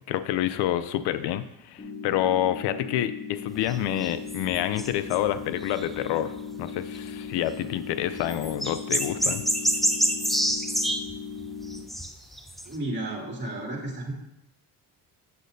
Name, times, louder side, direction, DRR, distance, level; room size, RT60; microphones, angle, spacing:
voice 1, 0.1-6.3 6.6-9.4, left 12 dB, 80° left, 13 dB, 0.5 m, -28 dB
sound 1, 1.8-11.8, left 6 dB, 35° left, 2.4 m, -38 dB
sound 2, 3.5-6.1 6.4-6.5 6.7-6.8 7.0-7.1 8.2-12.8, equal, ahead, 0.6 m, -28 dB
voice 2, 12.7-14.1, right 1 dB, 25° right, -2 dB, 2.7 m, -32 dB
8.5 x 7.3 x 2.7 m, 0.85 s
supercardioid pair, 85°, 40 cm